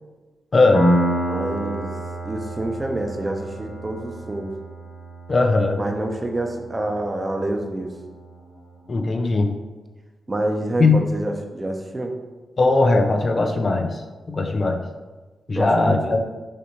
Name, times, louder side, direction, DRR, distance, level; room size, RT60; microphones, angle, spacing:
voice 1, 0.5-0.9 5.3-5.8 8.9-9.5 10.8-11.0 12.6-14.0 14.3-14.8 15.5-16.3, left 3 dB, 45° left, 5 dB, 0.5 m, -19 dB
Piano, 0.7-8.1, right 1 dB, 90° left, 1.5 m, -28 dB
voice 2, 1.3-1.9 2.2-4.5 5.8-7.9 10.3-12.1 15.5-16.0, right 1 dB, 30° right, 3 dB, 0.7 m, -27 dB
6.3 x 2.6 x 3.0 m, 1.2 s
cardioid pair, 55°, 0 cm